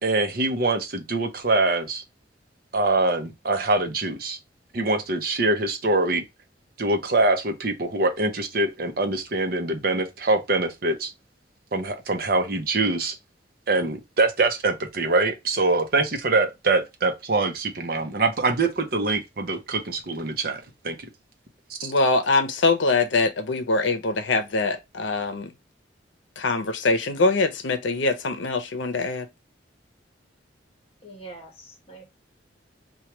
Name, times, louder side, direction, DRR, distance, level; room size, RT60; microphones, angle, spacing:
voice 1, 0.0-2.0 2.7-4.4 4.7-6.2 6.8-11.1 11.7-13.2 13.7-21.1 21.8-21.9, right 2 dB, 50° right, 0.7 m, -24 dB
voice 2, 21.8-25.5 26.4-29.3, left 3 dB, 85° left, 0.7 m, -23 dB
voice 3, 31.0-32.0, right 2 dB, 30° left, 1.1 m, -43 dB
4.5 x 2.3 x 2.9 m
head